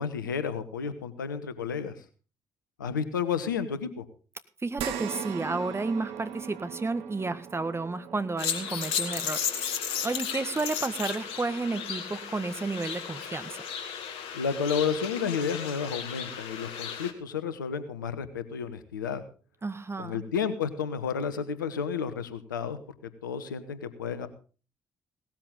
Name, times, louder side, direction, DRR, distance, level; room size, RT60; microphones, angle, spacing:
voice 1, 0.0-2.0 2.8-4.0 14.3-19.2 20.0-22.8 23.2-24.3, left 6 dB, 85° left, 12 dB, 1.1 m, -31 dB
voice 2, 4.6-13.6 19.6-20.2, right 3 dB, 25° right, 11 dB, 1.7 m, -32 dB
sound 1, 4.8-13.4 13.8-13.9 15.4-15.5, right 9 dB, 65° right, 1.4 m, -41 dB
sound 2, 8.4-17.1, left 7 dB, 70° left, 1.9 m, -34 dB
17.5 x 13.5 x 3.8 m, 0.37 s
figure-of-eight pair, 45°, 10 cm